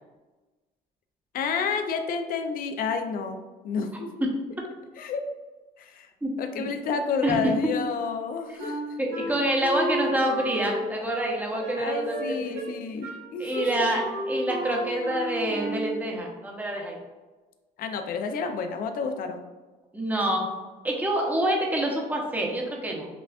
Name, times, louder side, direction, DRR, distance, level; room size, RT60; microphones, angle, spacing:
voice 1, 1.3-3.4 3.6-4.1 5.0-5.2 5.8-6.1 6.4-9.0 11.8-13.7 17.8-19.4, left 5 dB, 60° left, 6 dB, 0.5 m, -30 dB
voice 2, 6.2-6.6 7.2-7.5 9.0-12.6 13.4-17.0 19.9-20.5 20.8-23.1, right 1 dB, 10° right, 0 dB, 0.8 m, -27 dB
Wind instrument woodwind instrument, 8.6-16.0, equal, 85° right, 1.0 m, -33 dB
5.8 x 2.3 x 2.4 m, 1.2 s
cardioid pair, 110°, 17 cm